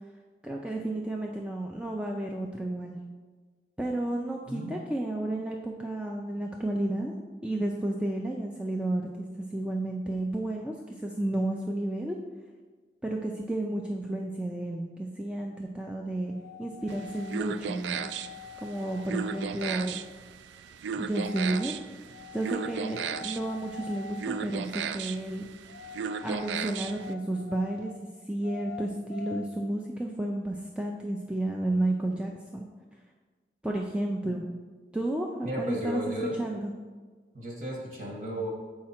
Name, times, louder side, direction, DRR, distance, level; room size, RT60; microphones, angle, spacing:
voice 1, 0.4-3.0 3.8-7.1 7.4-12.2 13.0-18.1 18.6-20.0 20.9-21.7 22.3-25.4 26.2-27.9 28.3-32.7 33.6-34.4 34.9-36.7, right 1 dB, 5° right, 0 dB, 0.3 m, -32 dB
sound 1, 16.3-17.4 17.9-20.0 21.1-21.7 22.0-24.6 25.7-28.0 28.4-29.4, left 5 dB, 85° left, 0.4 m, -45 dB
sound 2, 16.9-27.1, right 7 dB, 90° right, 0.3 m, -36 dB
voice 2, 35.4-36.3 37.3-38.5, equal, 45° right, -3 dB, 1.7 m, -34 dB
7.3 x 4.8 x 4.3 m, 1.4 s
head